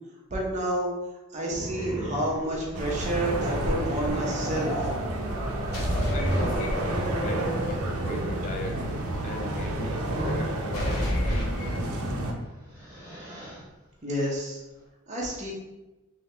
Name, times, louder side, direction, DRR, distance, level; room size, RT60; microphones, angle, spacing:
voice 1, 0.3-0.9 1.3-4.9 14.0-14.6 15.1-15.5, right 1 dB, 35° right, -3 dB, 0.9 m, -29 dB
Growling, 1.5-10.5 11.9-12.1 12.5-13.6, right 1 dB, 15° right, 1.4 m, -36 dB
sound 1, 1.8-2.4 5.7-7.3 10.7-12.3, equal, 75° left, 1.5 m, -30 dB
sound 2, 2.7-12.3, right 1 dB, 80° right, 0.6 m, -31 dB
voice 2, 6.1-6.8 7.2-8.8 9.2-11.5, left 2 dB, 35° left, 4 dB, 0.3 m, -38 dB
3.7 x 2.8 x 3.3 m, 1.1 s
head